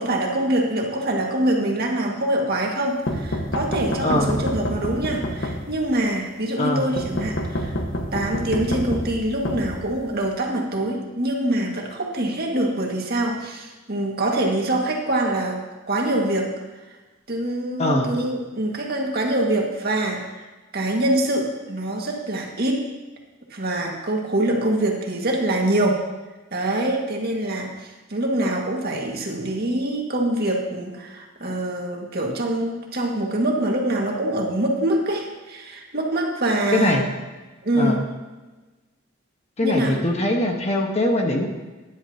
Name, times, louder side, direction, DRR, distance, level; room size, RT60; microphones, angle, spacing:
voice 1, 0.0-7.8 8.1-15.6 15.9-16.5 17.3-20.4 20.7-22.8 23.5-26.0 26.5-37.0 37.6-38.0 39.6-40.0, right 1 dB, 50° right, -1 dB, 2.0 m, -24 dB
sound 1, 3.1-6.0 7.0-10.3, equal, 90° left, 1.4 m, -28 dB
voice 2, 4.0-4.4 6.6-6.9 17.8-18.1 36.7-37.0 37.7-38.0 39.6-41.5, left 1 dB, 35° left, 2 dB, 1.3 m, -22 dB
16.0 x 11.0 x 2.9 m, 1.2 s
head